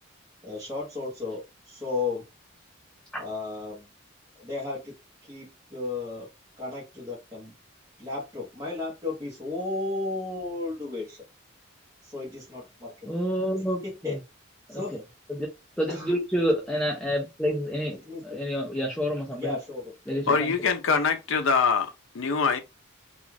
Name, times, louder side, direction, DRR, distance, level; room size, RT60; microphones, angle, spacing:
voice 1, 0.4-2.2 3.2-3.9 4.4-5.0 5.2-6.3 6.6-7.5 8.0-11.2 12.0-12.9 13.8-14.2 14.7-15.0 15.9-16.1 18.0-18.2 19.4-19.9, left 3 dB, 15° right, 0.9 m, -34 dB
voice 2, 13.1-14.2 14.7-15.0 15.3-15.5 15.8-19.6 20.1-20.4, equal, 5° left, 0.4 m, -28 dB
voice 3, 20.3-22.6, left 5 dB, 65° left, 0.5 m, -24 dB
2.4 x 2.4 x 3.1 m
head